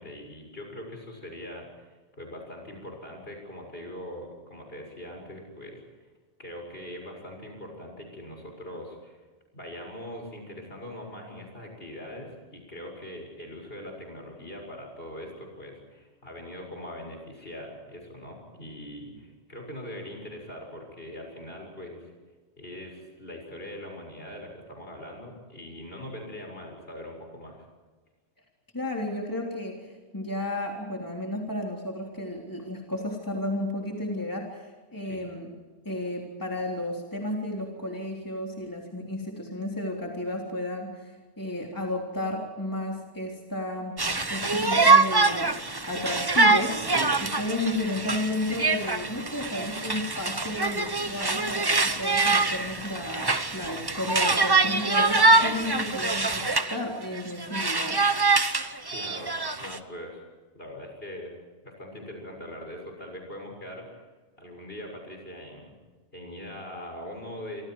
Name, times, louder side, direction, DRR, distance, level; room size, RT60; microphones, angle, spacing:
voice 1, 0.0-5.8 6.4-9.2 9.5-22.1 22.6-27.7 35.1-35.2 58.9-60.2 60.5-61.3 61.6-64.0 64.4-65.7 66.1-67.6, left 1 dB, 60° left, 2 dB, 7.2 m, -41 dB
voice 2, 28.7-29.9 30.1-35.5 35.9-44.0 44.3-45.6 45.9-58.0, left 1 dB, 15° left, -1 dB, 3.6 m, -33 dB
Conversation, 44.0-56.8 57.1-59.8, right 3 dB, 20° right, 1.1 m, -24 dB
28.0 x 26.0 x 4.8 m, 1.3 s
omnidirectional pair, 1.1 m